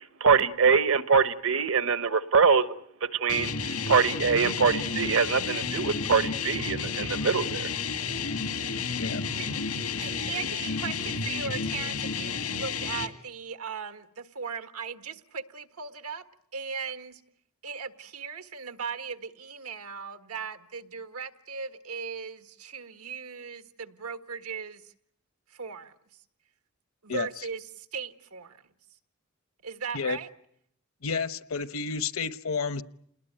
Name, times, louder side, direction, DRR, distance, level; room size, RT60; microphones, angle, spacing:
voice 1, 0.2-2.7 3.0-7.7, right 5 dB, 65° right, 1.1 m, -24 dB
sound 1, 3.3-13.1, left 5 dB, 90° left, 2.1 m, -31 dB
voice 2, 10.0-16.2 16.5-17.2 17.6-24.9 25.5-25.9 27.0-28.6 29.6-30.3, right 5 dB, 90° right, 1.6 m, -38 dB
voice 3, 31.0-32.8, left 5 dB, 70° left, 1.0 m, -30 dB
28.5 x 20.0 x 9.1 m
head